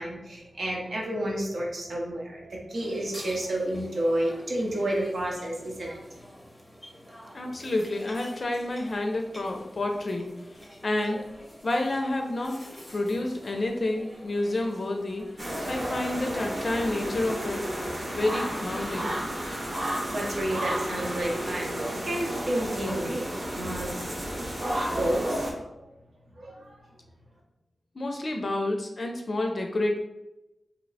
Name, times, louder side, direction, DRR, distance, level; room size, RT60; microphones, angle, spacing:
voice 1, 0.0-6.0 20.1-23.3 23.5-24.2 24.9-25.9 26.4-26.8, right 1 dB, 75° right, -2 dB, 0.8 m, -30 dB
sound 1, 2.7-19.1, equal, ahead, 0.6 m, -48 dB
voice 2, 7.3-10.3 10.8-11.2 11.6-12.6 12.9-15.3 15.7-17.7 18.1-19.1 27.9-30.0, left 2 dB, 45° left, 3 dB, 0.4 m, -29 dB
sound 2, 15.4-25.5, equal, 40° right, 0.8 m, -32 dB
2.9 x 2.1 x 3.9 m, 0.93 s
wide cardioid pair, 110°, 0 cm